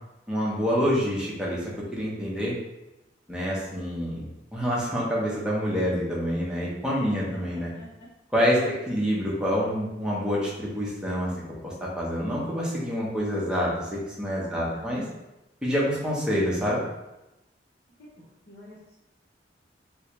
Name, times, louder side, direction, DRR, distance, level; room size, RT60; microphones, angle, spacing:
voice 1, 0.3-2.5 3.3-7.7 8.3-11.3 11.6-15.0 15.6-16.8, equal, 5° right, -6 dB, 0.8 m, -27 dB
voice 2, 7.0-8.1 8.6-8.8 14.5-15.0 18.5-19.0, right 1 dB, 65° left, -11 dB, 1.0 m, -46 dB
3.3 x 3.1 x 3.0 m, 0.97 s
head